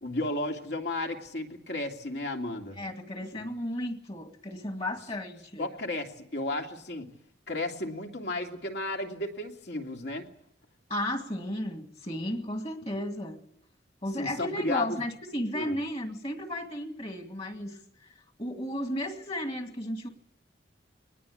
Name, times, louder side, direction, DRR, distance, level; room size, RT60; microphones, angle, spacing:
voice 1, 0.0-2.8 3.3-3.5 5.6-7.1 7.5-10.3 14.2-15.0 15.5-15.7, left 2 dB, 65° left, 2 dB, 2.8 m, -33 dB
voice 2, 2.8-5.7 10.9-13.4 14.0-18.1 18.4-20.1, left 1 dB, 35° left, 5 dB, 2.1 m, -34 dB
23.0 x 20.0 x 8.6 m, 0.72 s
head